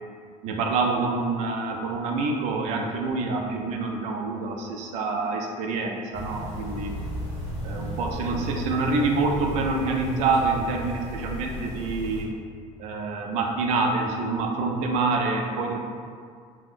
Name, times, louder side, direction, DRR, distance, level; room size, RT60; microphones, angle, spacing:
voice 1, 0.4-7.0 7.6-12.3 12.8-15.8, right 3 dB, 60° right, 2 dB, 0.4 m, -26 dB
sound 1, 6.1-12.2, equal, 25° right, 1.0 m, -35 dB
2.5 x 2.2 x 3.5 m, 2.1 s
cardioid pair, 180°, 13 cm